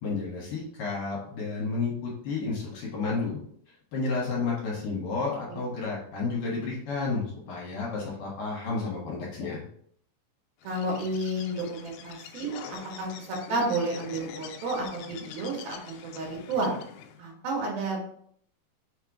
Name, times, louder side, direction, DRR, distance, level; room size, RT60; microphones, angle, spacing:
voice 1, 0.0-3.4 3.9-9.6, left 4 dB, 60° left, -4 dB, 3.1 m, -31 dB
Bird, 10.6-17.2, left 8 dB, 85° left, 2.7 m, -44 dB
voice 2, 10.6-16.8 17.2-18.0, right 2 dB, 70° right, -2 dB, 3.3 m, -31 dB
6.7 x 3.6 x 4.8 m, 0.63 s
omnidirectional pair, 4.7 m